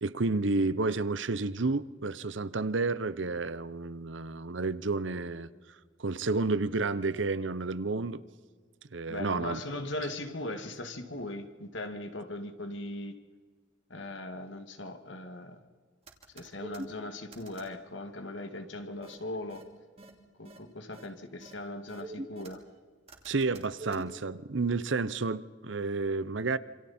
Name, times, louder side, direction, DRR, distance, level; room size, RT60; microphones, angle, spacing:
voice 1, 0.0-5.5 6.0-8.2 8.9-9.6 23.2-26.6, right 3 dB, 70° right, 15 dB, 0.8 m, -30 dB
voice 2, 9.1-13.1 13.9-15.6 16.3-19.6 20.4-22.6, left 1 dB, 70° left, 7 dB, 2.2 m, -39 dB
sound 1, 16.1-16.9 17.3-17.7 19.0-19.2 19.5-19.6 20.0-20.1 20.5-20.6 20.9-21.1 21.4-21.5 21.9-22.6 23.1-24.0, right 1 dB, 30° right, 2.8 m, -43 dB
27.5 x 26.5 x 4.4 m, 1.5 s
head